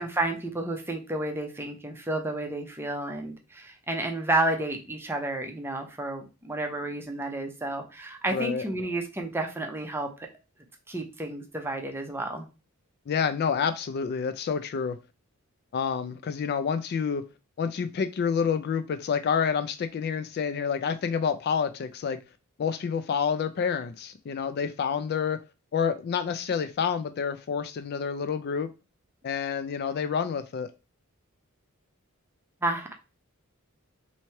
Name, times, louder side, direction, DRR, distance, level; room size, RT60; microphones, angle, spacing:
voice 1, 0.0-10.1 10.9-12.4 32.6-32.9, right 2 dB, 10° right, 3 dB, 0.6 m, -31 dB
voice 2, 8.3-8.6 13.1-15.0 15.7-17.2 17.6-22.2 22.6-25.4 25.7-28.7 29.2-30.7, left 6 dB, 50° left, 10 dB, 0.3 m, -28 dB
3.1 x 2.8 x 4.3 m, 0.29 s
head